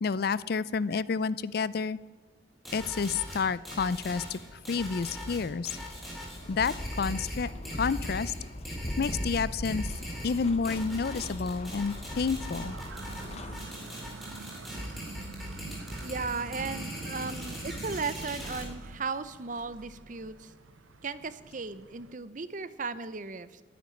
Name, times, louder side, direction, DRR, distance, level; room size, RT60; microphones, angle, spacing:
voice 1, 0.0-2.0 2.7-5.8 6.5-7.5 7.8-8.3 9.0-9.9 10.2-12.8, left 5 dB, 50° left, 19 dB, 0.4 m, -30 dB
sound 1, 2.6-18.6, equal, ahead, 3.6 m, -40 dB
sound 2, 2.9-13.6, left 1 dB, 35° left, 0.9 m, -40 dB
sound 3, 6.0-8.3 9.1-22.1, right 3 dB, 85° right, 0.8 m, -47 dB
voice 2, 16.0-20.5 21.0-23.6, right 4 dB, 40° right, 14 dB, 0.7 m, -36 dB
12.5 x 10.5 x 9.8 m, 1.3 s
head